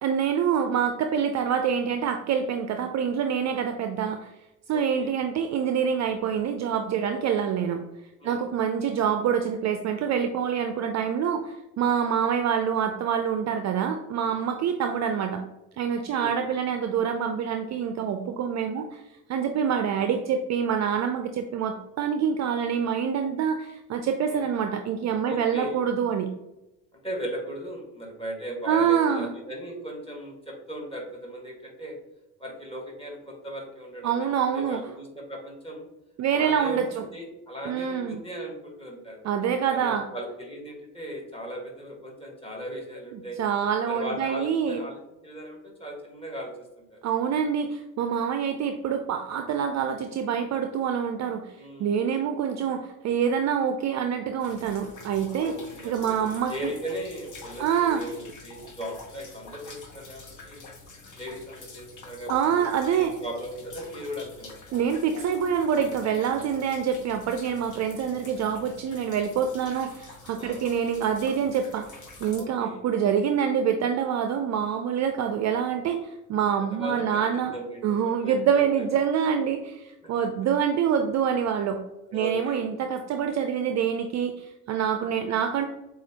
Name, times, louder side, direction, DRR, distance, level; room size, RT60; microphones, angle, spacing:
voice 1, 0.0-4.3 4.7-7.8 8.2-15.4 15.8-19.0 19.3-26.3 28.7-29.3 34.0-34.8 36.2-37.1 37.6-38.2 39.2-40.1 43.1-44.8 47.0-51.5 51.8-55.5 55.8-56.7 57.6-58.0 62.3-63.2 64.7-77.5 77.8-81.8 82.1-85.7, right 7 dB, 40° right, 6 dB, 0.4 m, -26 dB
voice 2, 4.7-5.1 8.2-8.4 16.1-16.4 19.6-19.8 24.2-24.4 25.2-25.8 27.0-32.0 32.4-34.3 34.5-35.9 36.3-39.2 39.7-43.4 43.9-46.5 46.9-47.0 51.5-52.0 55.5-56.2 56.5-60.6 61.1-64.6 66.3-66.4 70.4-70.6 72.4-72.8 76.6-78.9 82.1-82.6, equal, 15° left, 0 dB, 1.6 m, -37 dB
sound 1, 54.4-72.4, left 3 dB, 45° left, 1.2 m, -46 dB
7.2 x 2.4 x 2.9 m, 0.94 s
hypercardioid pair, 60°, 43 cm